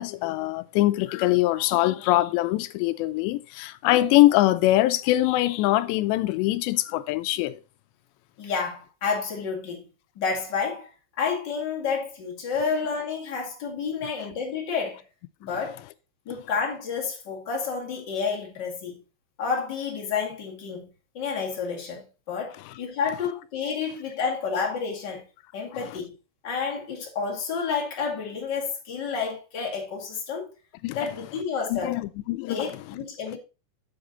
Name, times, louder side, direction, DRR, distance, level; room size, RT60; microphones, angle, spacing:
voice 1, 0.0-7.6 25.8-25.9 30.8-31.0 31.7-32.7, left 16 dB, 85° left, 2.6 m, -23 dB
voice 2, 8.4-10.9 11.2-15.0 15.4-15.8 16.2-19.0 19.4-25.2 25.5-26.1 26.4-30.5 30.9-32.0 32.5-33.4, left 5 dB, 40° left, 1.6 m, -30 dB
8.0 x 7.3 x 4.0 m
omnidirectional pair, 5.2 m